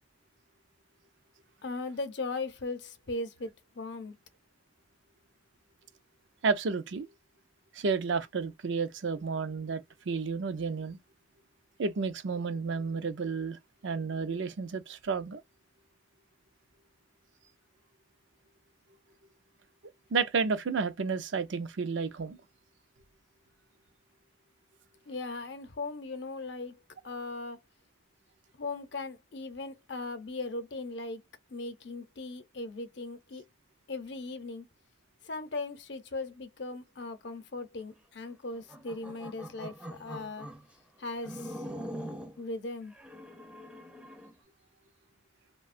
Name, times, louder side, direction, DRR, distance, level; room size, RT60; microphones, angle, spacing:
voice 1, 1.6-4.2 25.1-26.8 27.0-27.6 28.5-31.2 31.5-33.4 33.9-34.7 35.2-40.5 41.0-41.6 42.4-42.9, left 3 dB, 60° left, 0.7 m, -38 dB
voice 2, 6.4-7.1 7.7-11.0 11.8-15.4 20.1-22.4, right 5 dB, 75° right, 0.5 m, -31 dB
sound 1, 38.5-40.6 41.2-42.4 42.9-44.3, equal, 5° right, 0.5 m, -43 dB
2.8 x 2.2 x 2.4 m
head